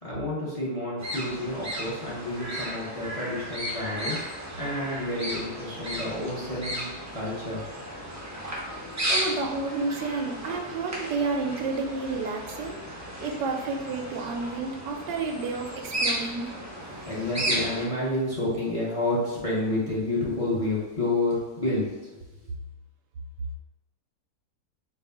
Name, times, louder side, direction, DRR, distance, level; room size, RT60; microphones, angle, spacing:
voice 1, 0.0-7.6 17.0-21.9, left 2 dB, 30° left, -7 dB, 0.8 m, -29 dB
sound 1, 1.0-17.9, right 1 dB, 25° right, 0.4 m, -34 dB
sound 2, 7.5-13.0, equal, 55° left, 1.4 m, -51 dB
voice 2, 9.1-12.8 13.2-16.5, right 3 dB, 90° right, 3 dB, 1.3 m, -30 dB
4.6 x 2.4 x 3.7 m, 1.2 s
omnidirectional pair, 1.8 m